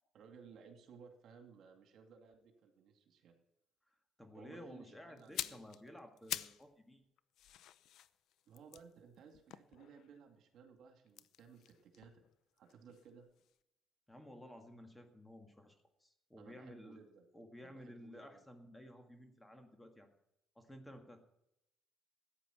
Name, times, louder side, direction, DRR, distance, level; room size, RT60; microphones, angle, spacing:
voice 1, 0.1-3.3 4.3-5.6 8.5-12.1 12.6-13.3 16.4-17.2 17.6-18.4, right 6 dB, 65° right, 5 dB, 2.4 m, -59 dB
voice 2, 3.9-7.0 14.1-17.0 17.3-20.1 20.6-21.2, left 1 dB, 10° left, 5 dB, 1.9 m, -54 dB
sound 1, 5.2-6.7 7.0-10.2 11.1-13.1 13.4-13.6, left 12 dB, 70° left, 0.6 m, -47 dB
14.5 x 9.8 x 5.9 m, 0.84 s
cardioid pair, 120°, 0 cm